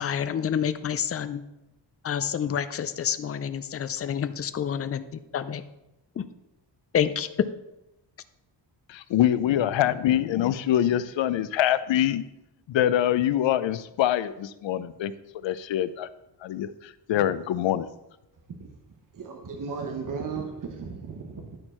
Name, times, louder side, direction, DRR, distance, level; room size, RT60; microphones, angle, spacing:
voice 1, 0.0-1.4 2.0-5.0 5.3-5.6 6.2-6.3 6.9-7.3, left 8 dB, 35° left, 11 dB, 0.4 m, -28 dB
voice 2, 8.9-12.2 12.7-15.1 15.4-16.1 16.4-17.9, left 11 dB, 90° left, 14 dB, 0.6 m, -24 dB
voice 3, 19.1-21.6, right 5 dB, 45° right, 3 dB, 1.0 m, -35 dB
10.5 x 4.5 x 4.4 m, 0.90 s
wide cardioid pair, 125°, 44 cm